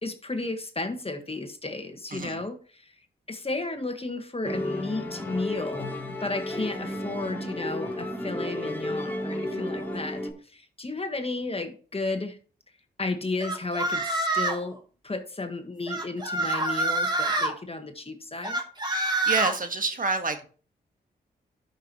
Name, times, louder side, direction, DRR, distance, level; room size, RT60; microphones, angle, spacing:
voice 1, 0.0-2.9 3.3-5.9 6.2-10.2 10.5-12.4 13.0-14.8 15.0-18.6, left 3 dB, 30° left, 7 dB, 1.6 m, -33 dB
voice 2, 2.1-2.4 19.3-20.5, right 3 dB, 45° right, 6 dB, 1.6 m, -28 dB
Musical instrument, 4.4-10.3, left 1 dB, 10° left, 3.1 m, -33 dB
sound 1, 13.4-14.7 15.9-17.5 18.4-19.5, right 2 dB, 25° right, 3.0 m, -26 dB
12.0 x 5.7 x 3.1 m, 0.39 s
supercardioid pair, 45°, 19 cm